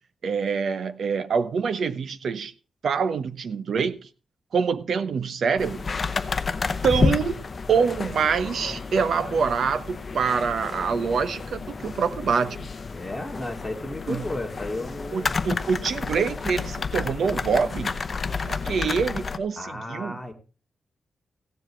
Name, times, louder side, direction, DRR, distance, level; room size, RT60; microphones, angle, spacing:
voice 1, 0.2-2.5 2.8-4.0 4.5-5.8 6.8-7.4 7.7-12.7 14.1-14.3 15.1-17.9 18.4-20.3, right 6 dB, 65° right, 1.0 m, -25 dB
sound 1, 5.6-19.4, left 4 dB, 35° left, 0.8 m, -30 dB
voice 2, 12.9-15.4 19.6-20.3, left 2 dB, 5° left, 2.4 m, -33 dB
16.0 x 7.6 x 4.5 m
wide cardioid pair, 135°, 0 cm